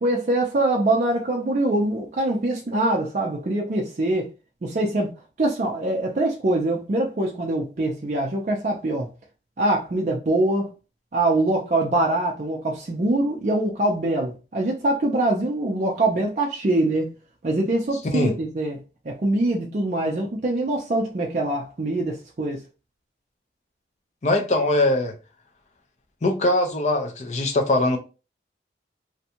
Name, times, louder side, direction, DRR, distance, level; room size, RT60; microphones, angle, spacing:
voice 1, 0.0-4.3 4.6-5.1 5.4-9.1 9.6-10.7 11.1-17.1 17.4-18.8 19.1-22.6, right 2 dB, 45° right, 0.4 m, -23 dB
voice 2, 24.2-25.1 26.2-28.0, left 2 dB, 40° left, 0.5 m, -21 dB
2.6 x 2.2 x 2.8 m
head